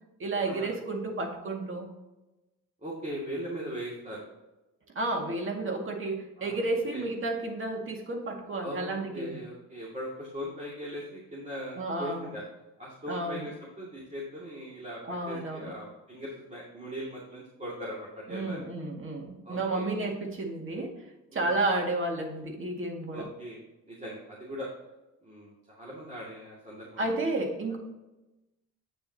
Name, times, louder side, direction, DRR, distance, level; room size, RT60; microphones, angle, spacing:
voice 1, 0.2-1.9 5.0-9.4 11.8-12.3 13.1-13.5 15.0-15.7 18.3-20.9 21.3-23.3 27.0-27.8, right 2 dB, 45° right, 2 dB, 2.0 m, -32 dB
voice 2, 2.8-4.2 6.4-6.6 6.9-7.0 8.6-12.4 12.8-15.0 15.3-18.6 19.4-19.8 21.3-21.6 23.1-23.6 23.9-24.7 25.2-27.1, equal, 25° right, -5 dB, 2.2 m, -39 dB
8.6 x 7.2 x 2.8 m, 1.0 s
cardioid pair, 90°, 30 cm